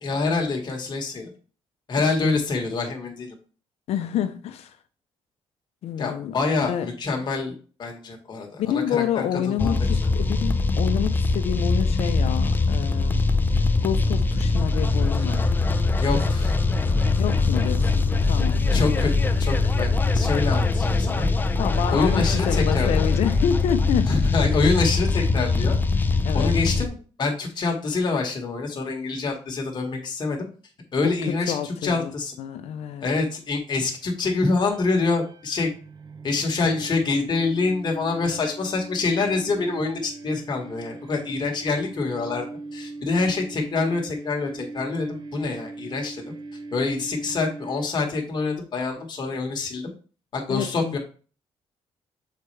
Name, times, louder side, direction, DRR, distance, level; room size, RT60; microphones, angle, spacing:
voice 1, 0.0-1.3 1.9-3.4 6.0-10.0 16.0-16.5 16.8-17.0 17.6-17.7 18.7-19.1 19.4-19.9 20.1-21.3 21.9-23.1 24.1-25.8 26.3-30.5 30.9-32.4 33.0-35.7 36.2-42.5 42.7-46.3 46.7-49.9 50.3-51.0, left 3 dB, 40° left, 1.8 m, -26 dB
voice 2, 3.9-4.7 5.8-6.3 6.7-6.9 8.6-13.2 13.8-15.5 17.2-19.2 21.6-24.1 26.2-26.5 31.3-32.1 32.4-33.0 50.5-51.0, left 9 dB, 75° left, 0.7 m, -28 dB
sound 1, 9.6-26.9, left 3 dB, 20° left, 0.5 m, -22 dB
sound 2, 34.2-48.3, right 3 dB, 45° right, 0.9 m, -40 dB
6.7 x 4.3 x 3.4 m
cardioid pair, 110°, 11 cm